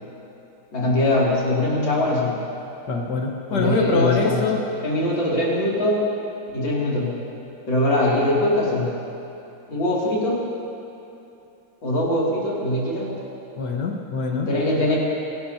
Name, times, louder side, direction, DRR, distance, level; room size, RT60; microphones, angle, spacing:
voice 1, 0.7-2.4 3.5-4.4 4.8-6.0 6.5-7.1 7.7-8.9 9.7-10.4 11.8-13.1 14.5-15.0, left 1 dB, 90° left, -6 dB, 3.6 m, -22 dB
voice 2, 2.9-4.6 13.6-14.5, left 4 dB, 60° left, 1 dB, 2.0 m, -24 dB
25.5 x 12.0 x 2.9 m, 2.9 s
omnidirectional pair, 2.0 m